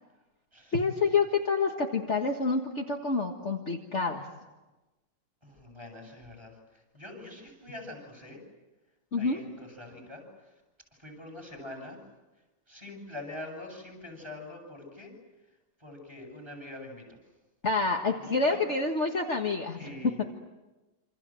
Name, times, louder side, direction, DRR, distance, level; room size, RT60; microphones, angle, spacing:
voice 1, 0.7-4.3 9.1-9.4 17.6-19.9 20.2-20.3, left 4 dB, 40° left, 1 dB, 1.9 m, -28 dB
voice 2, 5.4-8.4 9.1-10.5 11.0-12.0 12.7-15.1 15.8-17.0 18.0-18.6 19.7-20.3, left 2 dB, 15° right, 2 dB, 8.1 m, -44 dB
27.5 x 27.0 x 7.7 m, 1.1 s
omnidirectional pair, 1.9 m